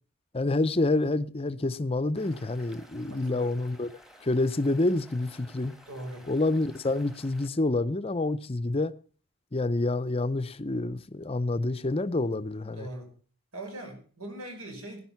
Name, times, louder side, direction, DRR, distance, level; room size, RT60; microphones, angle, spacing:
voice 1, 0.3-3.9 4.2-5.7 6.3-8.9 9.5-12.9, left 2 dB, 25° left, 0.6 m, -28 dB
sound 1, 2.1-7.5, equal, ahead, 1.2 m, -54 dB
voice 2, 3.1-3.5 5.9-6.3 12.8-13.1 13.5-15.0, right 1 dB, 85° right, 5.5 m, -40 dB
16.5 x 10.0 x 5.8 m
head